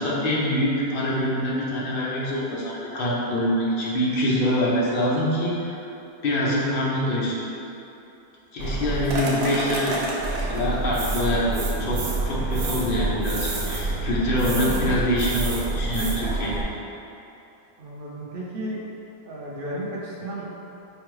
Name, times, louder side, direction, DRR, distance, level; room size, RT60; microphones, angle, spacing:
voice 1, 0.0-5.9 6.2-7.4 8.5-10.0 10.5-12.0 12.2-16.6, equal, 50° left, -6 dB, 0.8 m, -25 dB
voice 2, 8.6-9.3 17.8-18.8 19.2-20.4, right 1 dB, 55° right, -5 dB, 0.6 m, -34 dB
sound 1, 8.6-16.6, right 2 dB, 75° right, 1.1 m, -27 dB
5.2 x 2.3 x 3.1 m, 2.8 s
omnidirectional pair, 1.5 m